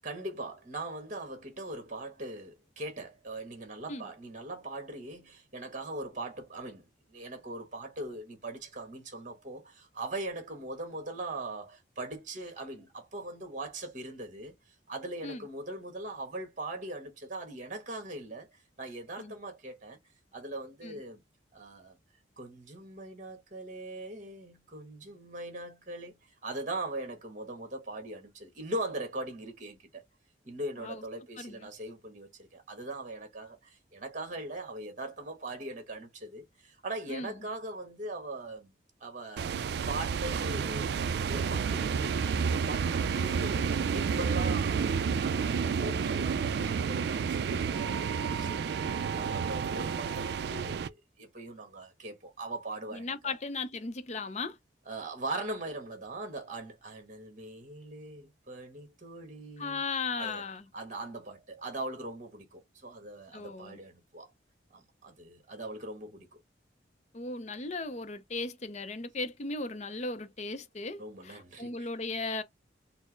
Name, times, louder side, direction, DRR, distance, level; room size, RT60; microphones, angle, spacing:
voice 1, 0.0-20.0 20.3-21.2 21.5-22.0 22.4-30.0 30.4-38.7 39.0-40.9 41.2-53.3 54.8-59.8 60.1-60.5 60.7-64.3 64.7-66.4 71.0-71.9, right 2 dB, 45° right, 1.2 m, -41 dB
voice 2, 31.4-31.7 37.1-37.3 52.9-54.6 59.6-60.7 63.3-63.8 67.1-72.4, left 3 dB, 35° left, 0.5 m, -37 dB
sound 1, 39.4-50.9, right 6 dB, 60° right, 0.3 m, -30 dB
4.3 x 2.0 x 4.4 m
head